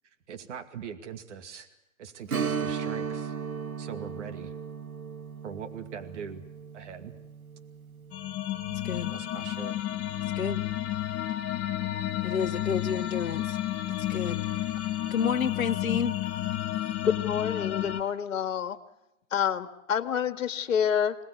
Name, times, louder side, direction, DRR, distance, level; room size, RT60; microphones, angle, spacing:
voice 1, 0.3-1.7 2.0-3.3 3.8-4.5 5.4-6.4 6.7-7.1 9.1-9.8, right 7 dB, 55° right, 7 dB, 2.5 m, -41 dB
Strum, 2.3-11.5 11.8-11.9 14.5-14.6 15.1-15.2, right 6 dB, 90° right, 1.8 m, -37 dB
sound 1, 8.1-18.0, left 13 dB, 25° left, 1.5 m, -31 dB
voice 2, 12.2-13.6 14.1-14.4 15.1-16.1, left 7 dB, 85° left, 6 dB, 0.9 m, -29 dB
voice 3, 17.0-18.8 19.3-21.2, left 8 dB, 65° left, 9 dB, 2.1 m, -28 dB
26.5 x 19.0 x 8.5 m, 0.90 s
hypercardioid pair, 140°, 41 cm